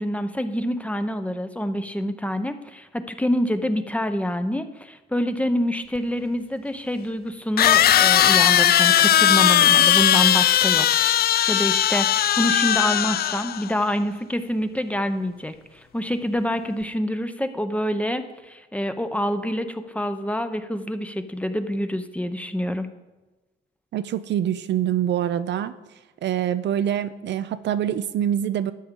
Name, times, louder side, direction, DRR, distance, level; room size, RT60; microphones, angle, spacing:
voice 1, 0.0-22.9, equal, 5° left, 9 dB, 0.7 m, -27 dB
sound 1, 6.0-6.1 7.6-13.7, left 11 dB, 50° left, 0.4 m, -18 dB
voice 2, 23.9-25.8 26.2-28.7, right 10 dB, 65° right, 13 dB, 0.5 m, -25 dB
13.0 x 8.5 x 3.8 m, 1.1 s
cardioid pair, 90°, 20 cm